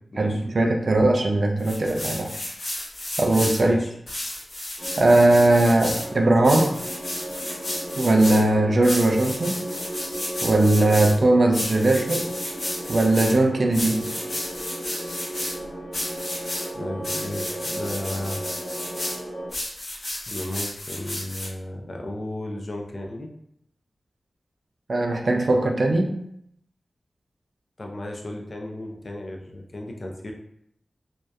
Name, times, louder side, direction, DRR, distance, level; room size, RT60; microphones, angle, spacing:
voice 1, 0.2-2.3 3.2-3.8 5.0-6.8 8.0-9.7 10.4-12.4 12.9-14.1 24.9-26.2, right 2 dB, 55° right, 2 dB, 0.3 m, -19 dB
sound 1, 1.6-3.6 4.1-6.1 6.4-8.4 8.8-11.1 11.5-13.3 13.7-15.5 15.9-16.7 17.0-19.2 19.5-21.5, left 1 dB, 65° left, 0.8 m, -32 dB
voice 2, 3.6-3.9 16.7-18.5 20.3-23.3 27.8-30.3, left 1 dB, 45° left, 1 dB, 0.4 m, -34 dB
sound 2, 4.8-19.5, right 1 dB, 5° right, 0.7 m, -35 dB
2.7 x 2.0 x 2.3 m, 0.72 s
wide cardioid pair, 115°, 0 cm